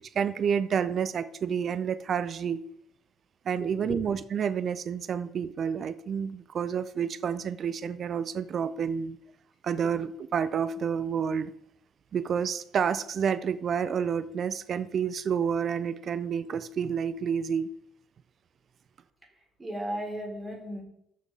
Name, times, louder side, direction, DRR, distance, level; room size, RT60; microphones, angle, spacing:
voice 1, 0.1-2.6 3.5-9.2 9.6-11.5 12.1-17.7, right 7 dB, 50° right, 15 dB, 0.5 m, -29 dB
voice 2, 3.6-4.0 19.6-20.8, right 1 dB, 25° right, -1 dB, 4.6 m, -35 dB
13.5 x 6.7 x 3.7 m, 0.75 s
figure-of-eight pair, 50°, 0 cm